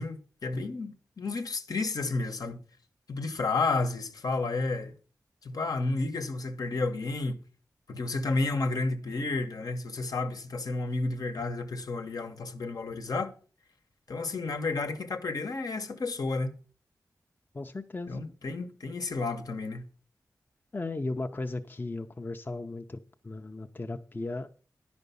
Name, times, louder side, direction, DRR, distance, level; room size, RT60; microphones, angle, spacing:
voice 1, 0.0-2.6 3.1-4.9 5.4-7.4 7.9-13.3 14.1-16.5 18.1-19.9, left 3 dB, 75° left, 1.1 m, -31 dB
voice 2, 17.5-18.2 20.7-24.5, left 2 dB, 30° left, 0.6 m, -36 dB
10.0 x 5.2 x 6.8 m
wide cardioid pair, 75°, 6 cm